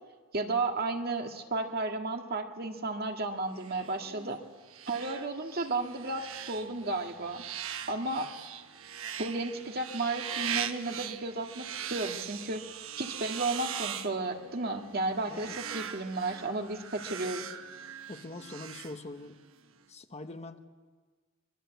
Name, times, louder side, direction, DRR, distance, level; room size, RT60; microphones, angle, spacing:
voice 1, 0.3-4.4 4.9-7.4 7.9-8.3 9.2-17.5, right 2 dB, 50° right, 3 dB, 1.9 m, -33 dB
sound 1, 3.6-19.5, right 9 dB, 90° right, 1.1 m, -41 dB
voice 2, 15.3-15.6 18.1-19.4 19.9-20.7, left 2 dB, 35° left, 6 dB, 1.3 m, -43 dB
24.5 x 23.0 x 8.2 m, 1.5 s
head